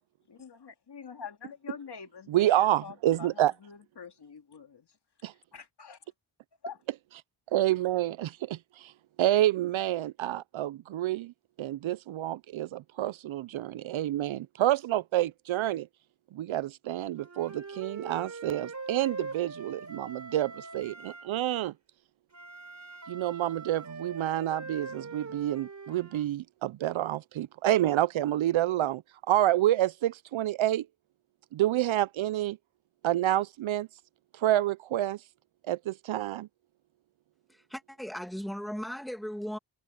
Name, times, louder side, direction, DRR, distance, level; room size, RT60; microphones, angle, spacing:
voice 1, 0.3-4.9 5.5-6.0 6.6-6.8, left 5 dB, 50° left, 3.0 m, -45 dB
voice 2, 2.3-3.5 5.2-5.3 7.5-8.9 9.2-11.3 11.6-15.9 16.3-21.7 23.1-29.0 29.3-30.9 31.5-32.6 33.0-33.9 34.3-35.2 35.7-36.5, right 13 dB, 70° right, 0.5 m, -28 dB
Wind instrument woodwind instrument, 17.2-21.3 22.3-26.2, right 3 dB, 35° right, 4.4 m, -42 dB
voice 3, 37.5-39.6, equal, ahead, 2.1 m, -37 dB
wide cardioid pair, 135°, 49 cm